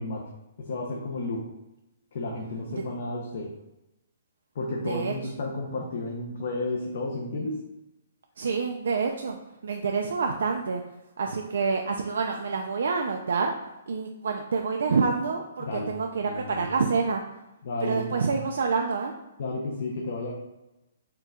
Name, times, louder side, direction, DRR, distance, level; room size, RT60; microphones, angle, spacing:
voice 1, 0.0-1.5 2.1-3.5 4.5-7.6 15.6-15.9 16.2-16.7 17.6-18.4 19.4-20.3, left 2 dB, 50° left, -1 dB, 0.5 m, -32 dB
voice 2, 8.4-9.4 9.6-10.8 11.2-13.5 13.9-17.2 17.8-19.1, right 5 dB, 75° right, 2 dB, 0.3 m, -27 dB
4.4 x 2.3 x 3.6 m, 0.95 s
hypercardioid pair, 175°, 0 cm